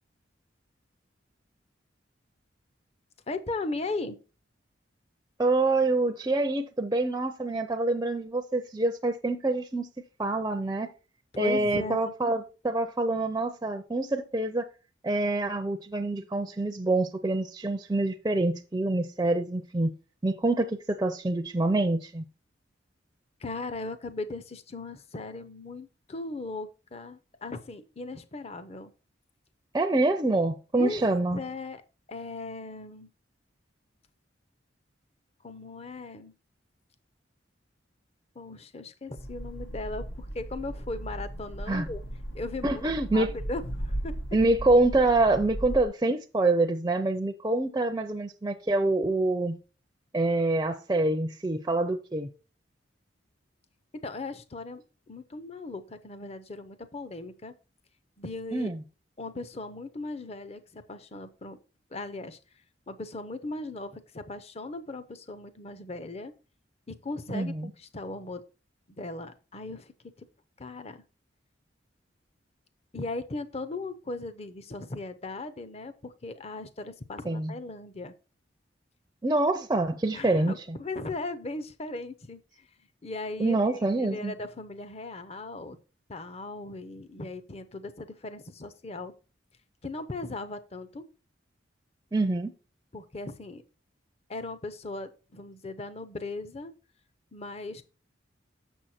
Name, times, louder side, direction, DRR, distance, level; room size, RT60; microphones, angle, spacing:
voice 1, 3.3-4.2 11.3-12.1 23.4-28.9 30.8-31.1 31.3-31.8 32.1-33.1 35.4-36.3 38.4-42.0 42.3-44.1 54.0-54.8 55.1-57.5 58.2-58.7 59.2-61.6 61.9-62.4 62.9-66.3 66.9-68.4 68.9-69.9 70.2-70.3 70.6-71.0 72.9-78.1 80.1-82.7 83.0-85.8 86.1-89.1 89.8-91.0 92.9-93.6 94.3-96.7 97.3-97.8, left 2 dB, 30° left, 0.6 m, -38 dB
voice 2, 5.4-9.9 10.2-10.9 11.4-14.7 15.0-19.9 20.2-22.3 29.7-31.4 41.7-41.9 42.6-43.3 44.3-49.6 50.1-52.3 58.5-58.8 67.3-67.7 77.3-77.5 79.2-80.8 83.4-84.3 92.1-92.5, right 2 dB, 15° right, 0.5 m, -26 dB
sound 1, 39.1-45.9, right 1 dB, 90° left, 1.4 m, -37 dB
6.9 x 6.3 x 4.2 m
head